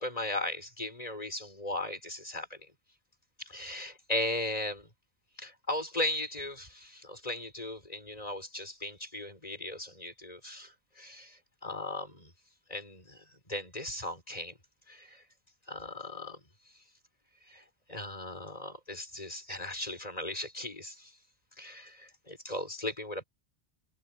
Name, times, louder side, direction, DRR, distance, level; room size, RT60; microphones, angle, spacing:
voice 1, 0.0-2.7 3.4-4.9 5.4-12.3 12.7-14.5 14.9-15.2 15.7-16.4 17.4-21.1 21.6-23.2, left 1 dB, 35° left, 5.2 m, -37 dB
omnidirectional pair, 1.1 m